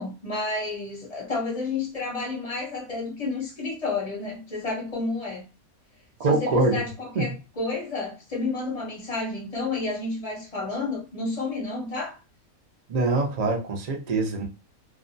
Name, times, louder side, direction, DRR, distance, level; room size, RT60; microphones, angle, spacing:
voice 1, 0.0-5.4 6.3-12.2, left 3 dB, 35° left, 0.6 m, -31 dB
voice 2, 6.2-6.8 7.1-7.3 12.9-14.4, right 3 dB, 75° right, 0.3 m, -24 dB
2.6 x 2.1 x 2.5 m
omnidirectional pair, 1.6 m